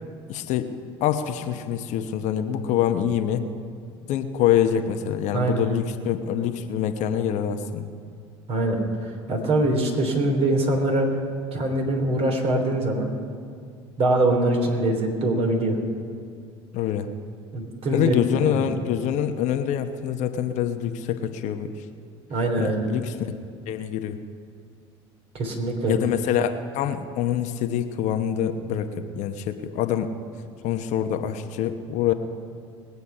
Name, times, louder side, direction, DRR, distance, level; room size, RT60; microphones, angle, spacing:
voice 1, 0.3-0.7 1.0-3.5 4.1-7.9 16.7-17.1 17.9-21.8 22.6-23.2 23.7-24.2 25.9-30.1 30.6-32.1, left 9 dB, 55° left, 7 dB, 1.0 m, -25 dB
voice 2, 8.5-11.2 11.5-13.1 14.0-15.8 17.5-18.1 18.4-18.6 22.3-22.8 25.3-25.9, right 2 dB, 45° right, 2 dB, 3.3 m, -23 dB
20.5 x 8.2 x 5.6 m, 2.2 s
hypercardioid pair, 70°, 14 cm